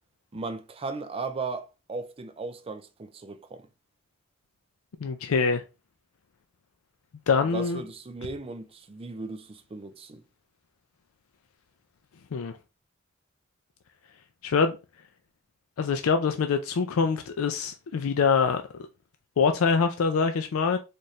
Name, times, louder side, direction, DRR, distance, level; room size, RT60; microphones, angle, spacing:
voice 1, 0.3-3.7 7.5-10.2, right 3 dB, 25° right, 0.4 m, -36 dB
voice 2, 5.0-5.6 7.3-7.8 12.3-12.6 14.4-14.8 15.8-18.6 19.4-20.8, left 5 dB, 85° left, 0.4 m, -24 dB
4.3 x 2.5 x 3.1 m
head